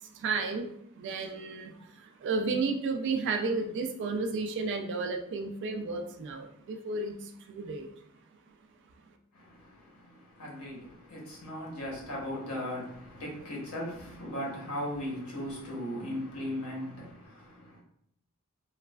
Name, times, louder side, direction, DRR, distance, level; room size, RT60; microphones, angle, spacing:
voice 1, 0.1-0.7 1.0-7.9, right 4 dB, 55° right, 0.3 m, -32 dB
voice 2, 9.3-17.8, left 1 dB, 85° left, 1.0 m, -38 dB
3.0 x 2.3 x 2.2 m
head